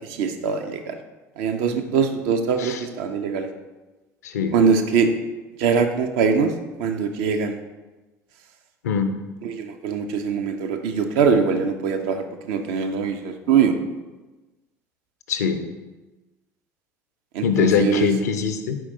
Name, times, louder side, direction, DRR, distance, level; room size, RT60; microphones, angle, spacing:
voice 1, 0.1-1.0 1.4-3.5 4.5-5.1 5.6-6.5 6.8-7.6 9.4-13.7 17.3-18.1, right 6 dB, 55° right, 6 dB, 0.4 m, -22 dB
voice 2, 4.2-4.5 8.8-9.1 15.3-15.6 17.4-18.8, left 6 dB, 70° left, 8 dB, 0.4 m, -22 dB
4.5 x 4.4 x 2.7 m, 1.1 s
figure-of-eight pair, 65°, 9 cm